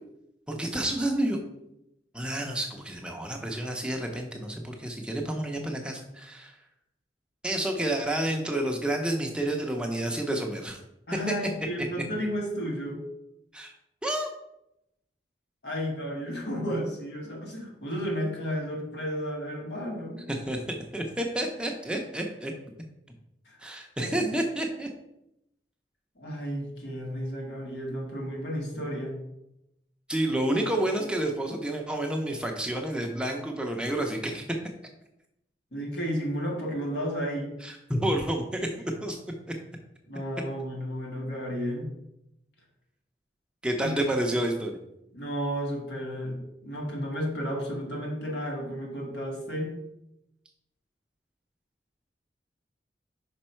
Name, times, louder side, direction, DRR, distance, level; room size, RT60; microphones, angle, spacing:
voice 1, 0.5-1.4 2.1-6.5 7.4-10.8 13.5-13.7 14.0-14.3 20.3-22.5 23.6-24.9 30.1-34.6 37.6-39.2 43.6-44.8, right 1 dB, 5° right, 2 dB, 0.6 m, -29 dB
voice 2, 11.1-13.1 15.6-20.3 23.5-23.6 24.0-24.4 26.2-29.2 35.7-37.6 40.1-41.9 43.8-43.9 45.1-49.8, equal, 75° left, 0 dB, 1.6 m, -33 dB
5.4 x 5.3 x 4.4 m, 0.84 s
head